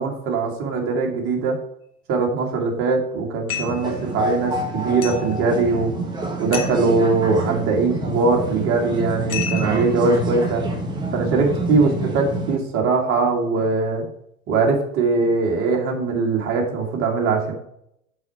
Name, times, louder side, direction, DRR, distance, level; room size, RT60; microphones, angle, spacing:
voice 1, 0.0-1.6 2.1-5.9 6.4-10.6 11.1-14.0 14.5-17.5, right 4 dB, 30° right, 1 dB, 1.9 m, -21 dB
sound 1, 3.5-3.9 5.0-5.3 6.5-6.9 9.3-9.9, left 8 dB, 75° left, 1.4 m, -30 dB
sound 2, 3.6-12.6, right 1 dB, 10° right, 1.5 m, -27 dB
6.8 x 4.6 x 5.8 m, 0.75 s
figure-of-eight pair, 100°, 44 cm